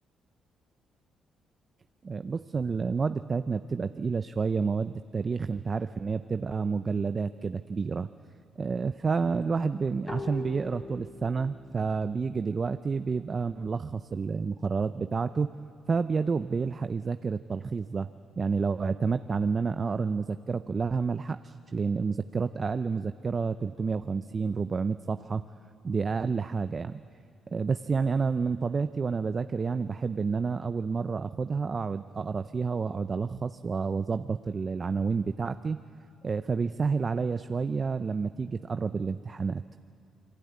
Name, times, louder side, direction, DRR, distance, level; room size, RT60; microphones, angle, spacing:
voice 1, 2.0-8.1 8.6-15.5 15.9-18.1 18.4-25.4 25.8-27.0 27.5-35.8 36.2-39.6, right 5 dB, 35° right, 11 dB, 0.6 m, -29 dB
sound 1, 10.1-13.6, left 2 dB, 30° left, 3.0 m, -43 dB
28.5 x 21.0 x 9.6 m, 2.4 s
cardioid pair, 90°, 0 cm